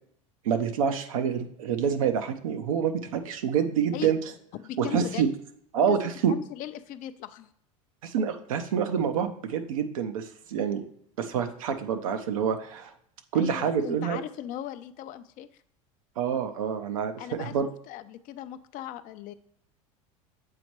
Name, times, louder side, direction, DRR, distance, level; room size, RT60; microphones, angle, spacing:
voice 1, 0.4-4.2 4.8-5.3 5.7-6.4 8.0-10.8 11.2-12.9 13.3-14.2 16.2-17.7, right 7 dB, 85° right, 7 dB, 0.7 m, -27 dB
voice 2, 4.5-5.2 5.9-6.0 6.3-7.5 13.3-15.5 17.2-17.5 17.9-19.3, left 11 dB, 50° left, 12 dB, 0.5 m, -38 dB
7.6 x 4.2 x 3.1 m, 0.68 s
hypercardioid pair, 85°, 17 cm